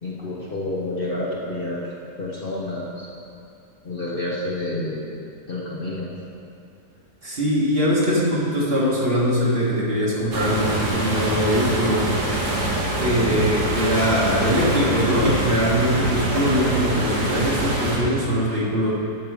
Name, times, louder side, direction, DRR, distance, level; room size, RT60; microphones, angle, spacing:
voice 1, 0.0-1.9 2.2-3.1 3.8-5.1 5.5-6.1, left 2 dB, 40° left, -5 dB, 1.0 m, -29 dB
voice 2, 7.2-12.1 13.0-18.9, equal, 40° right, -5 dB, 1.6 m, -22 dB
sound 1, 10.3-18.0, right 1 dB, 55° right, 1.7 m, -25 dB
10.5 x 6.6 x 4.7 m, 2.5 s
omnidirectional pair, 1.7 m